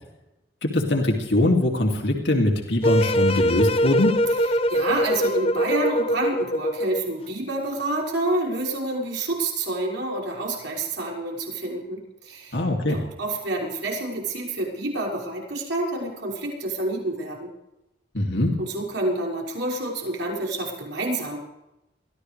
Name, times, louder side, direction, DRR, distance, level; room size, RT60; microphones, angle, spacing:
voice 1, 0.6-4.2 12.5-13.0 18.1-18.6, left 1 dB, 75° left, 1 dB, 2.8 m, -22 dB
sound 1, 2.8-7.1, equal, 30° left, 0.7 m, -23 dB
voice 2, 4.7-12.6 12.9-17.5 18.6-21.4, right 2 dB, 85° right, -2 dB, 6.2 m, -28 dB
23.5 x 15.5 x 3.4 m, 0.92 s
head